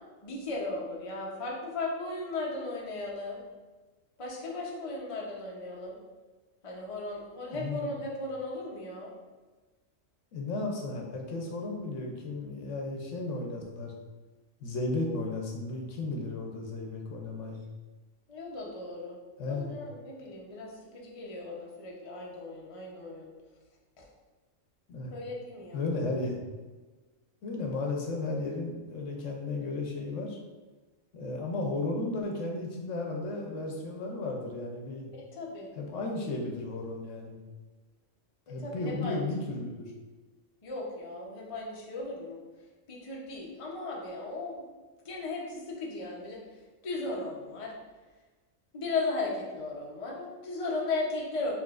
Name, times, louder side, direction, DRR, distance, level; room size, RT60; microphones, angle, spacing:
voice 1, 0.2-3.4 4.2-6.0 6.6-9.1 18.3-19.2 19.5-23.3 25.1-25.9 35.1-35.7 38.6-39.2 40.6-42.4 42.9-44.6 45.0-46.4 46.8-47.7 48.7-51.5, left 3 dB, 35° left, -2 dB, 0.6 m, -36 dB
voice 2, 7.5-7.9 10.3-13.9 14.6-17.6 19.4-19.8 24.9-25.1 25.7-26.4 27.4-30.4 31.1-35.1 35.8-37.4 38.5-39.9, left 2 dB, 70° left, 0 dB, 1.0 m, -34 dB
4.8 x 3.4 x 2.4 m, 1.3 s
omnidirectional pair, 1.4 m